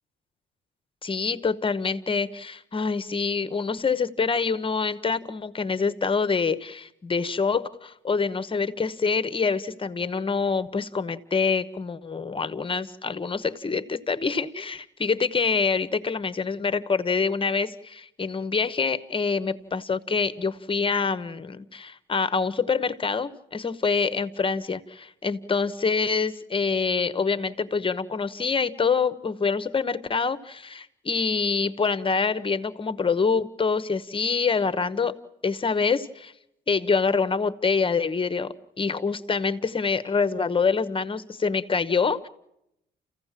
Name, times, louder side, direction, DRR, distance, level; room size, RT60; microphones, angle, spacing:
voice 1, 1.0-35.2 35.4-36.3 36.7-42.3, left 5 dB, 25° left, 13 dB, 1.0 m, -26 dB
29.0 x 15.5 x 7.5 m, 0.84 s
cardioid pair, 90°, 20 cm